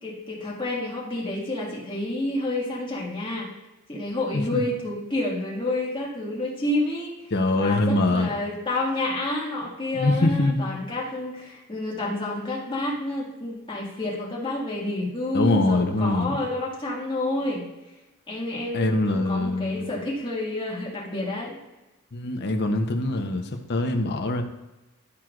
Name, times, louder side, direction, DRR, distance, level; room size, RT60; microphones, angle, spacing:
voice 1, 0.0-3.5 3.9-7.1 7.5-17.7 18.3-21.6, left 1 dB, 20° left, -5 dB, 1.9 m, -29 dB
voice 2, 7.3-8.3 9.9-10.7 15.3-16.4 18.7-19.9 22.1-24.4, left 2 dB, 50° left, 4 dB, 0.8 m, -23 dB
11.5 x 4.5 x 2.5 m, 1.0 s
head